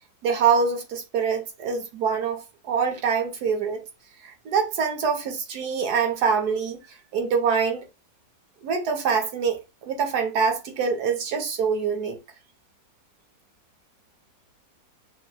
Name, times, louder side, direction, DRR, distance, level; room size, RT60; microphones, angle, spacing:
voice 1, 0.2-3.8 4.2-7.9 8.6-12.2, right 6 dB, 65° right, 1.4 m, -25 dB
6.0 x 2.2 x 2.2 m
omnidirectional pair, 2.0 m